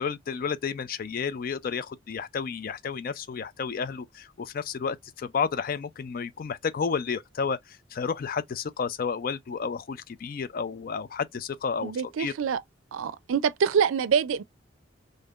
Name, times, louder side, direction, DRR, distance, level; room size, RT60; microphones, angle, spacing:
voice 1, 0.0-11.9 12.2-12.3, left 6 dB, 45° left, 0.3 m, -31 dB
voice 2, 11.8-12.6 12.9-14.4, right 7 dB, 85° right, 0.4 m, -25 dB
3.5 x 2.6 x 2.3 m
head